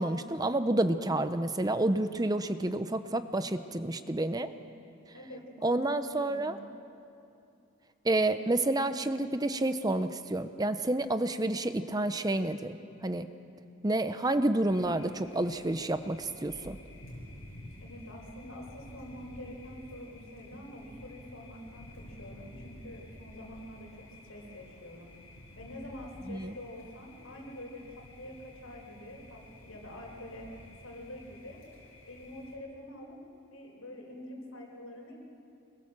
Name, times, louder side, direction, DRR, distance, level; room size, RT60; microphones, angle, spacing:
voice 1, 0.0-4.5 5.6-6.6 8.0-13.3 13.8-16.8 26.3-26.5, right 2 dB, 20° right, 10 dB, 0.6 m, -29 dB
voice 2, 5.1-5.8 6.2-6.6 17.8-25.1 25.6-30.5 30.8-31.6 32.1-33.2 33.5-35.2, left 1 dB, 80° left, 0 dB, 5.7 m, -46 dB
Thunder, 14.6-32.5, left 1 dB, 65° left, 6.7 m, -51 dB
25.0 x 21.5 x 7.3 m, 2.7 s
head